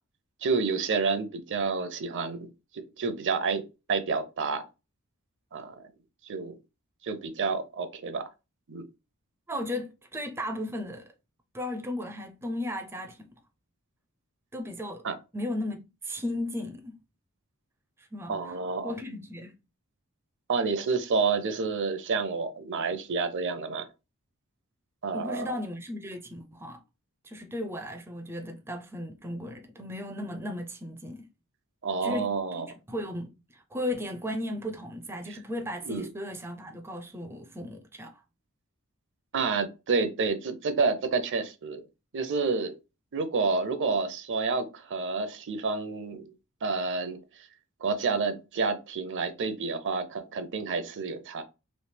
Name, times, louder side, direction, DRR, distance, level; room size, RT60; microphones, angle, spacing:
voice 1, 0.4-4.6 5.5-5.8 6.2-6.5 7.0-8.2 8.7-8.9 15.0-15.1 18.3-18.9 20.5-23.9 25.0-25.5 31.8-32.7 35.3-35.4 35.9-36.1 39.3-41.8 42.1-42.7 43.1-46.3 46.6-47.2 47.8-51.4, right 4 dB, 60° right, 0.6 m, -29 dB
voice 2, 9.5-11.1 11.5-13.3 14.5-15.0 15.3-17.0 18.0-18.6 18.8-19.5 25.1-26.8 27.2-31.3 32.0-38.2, left 1 dB, 10° right, 0.4 m, -36 dB
3.1 x 2.7 x 3.2 m
head